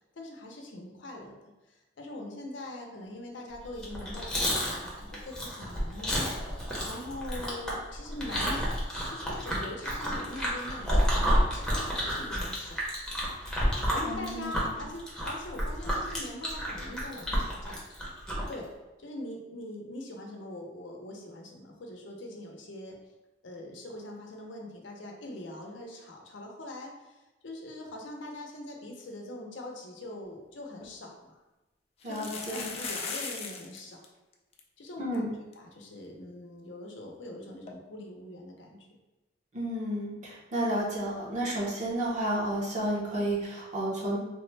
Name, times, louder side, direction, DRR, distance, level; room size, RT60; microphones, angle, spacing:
voice 1, 0.2-6.2 6.4-8.7 9.0-13.1 13.6-17.8 18.5-18.7 19.0-23.0 23.4-31.3 32.0-34.0 34.8-38.9, left 1 dB, 80° left, 1 dB, 0.6 m, -42 dB
Chewing mastication, 3.7-18.5, equal, 5° left, 0.7 m, -30 dB
voice 2, 14.1-14.8 32.0-32.7 35.0-35.3 39.5-44.2, right 1 dB, 40° right, -5 dB, 0.8 m, -31 dB
sound 1, 30.4-30.5 30.8-30.9 32.0-33.8 34.0-34.1 34.3-34.6 35.1-35.2 35.5-35.6 37.7-37.8, left 5 dB, 35° left, 0.4 m, -37 dB
3.2 x 2.1 x 3.2 m, 1.1 s
head